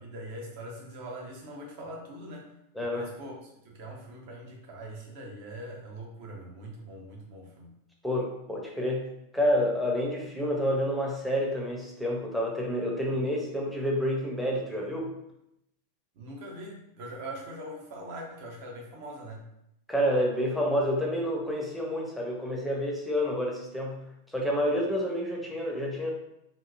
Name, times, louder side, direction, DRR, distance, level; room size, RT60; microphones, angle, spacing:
voice 1, 0.0-2.5 2.9-7.7 16.2-19.4, right 1 dB, 45° right, -1 dB, 0.7 m, -42 dB
voice 2, 2.8-3.1 8.0-9.1 9.3-15.1 19.9-26.1, equal, ahead, -2 dB, 0.6 m, -29 dB
2.8 x 2.5 x 2.4 m, 0.82 s
figure-of-eight pair, 90°, 0 cm